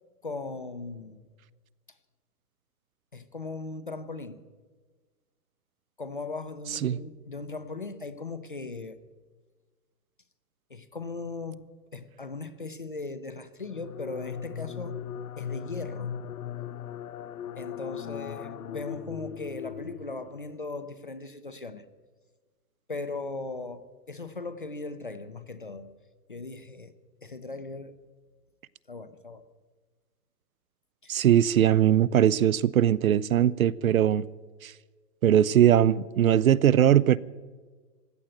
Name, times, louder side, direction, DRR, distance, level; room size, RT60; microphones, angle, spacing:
voice 1, 0.2-1.3 3.1-4.4 6.0-9.0 10.7-11.6 11.9-15.0 15.4-16.2 17.6-21.8 22.9-25.9 26.3-26.9 27.2-27.9 28.9-29.4 31.0-31.2, left 3 dB, 35° left, 0.5 m, -38 dB
sound 1, 13.6-20.5, left 8 dB, 60° left, 0.8 m, -38 dB
voice 2, 31.1-34.2 34.6-34.7 35.2-37.2, right 10 dB, 60° right, 0.5 m, -21 dB
16.5 x 11.5 x 7.8 m
hypercardioid pair, 175°, 49 cm